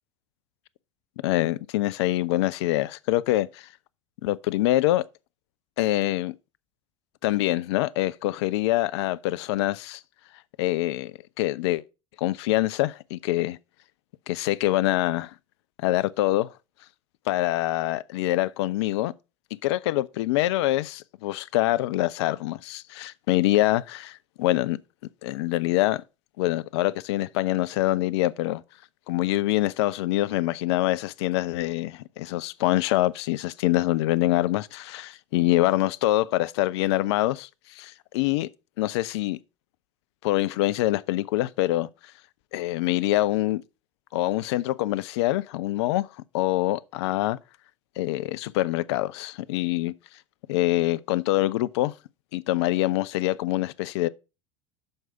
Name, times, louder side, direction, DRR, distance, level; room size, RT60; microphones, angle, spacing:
voice 1, 1.2-3.7 4.2-5.0 5.8-6.3 7.2-10.0 10.6-11.8 12.2-13.6 14.3-15.3 15.8-16.5 17.3-19.1 19.6-24.8 25.2-26.0 26.4-28.6 29.1-37.5 37.8-38.5 38.8-39.4 40.2-41.9 42.5-43.6 44.1-46.1 46.3-47.4 48.0-49.9 50.5-51.9 52.3-54.1, left 16 dB, 55° left, 0.4 m, -25 dB
6.6 x 4.6 x 5.6 m
figure-of-eight pair, 70°, 16 cm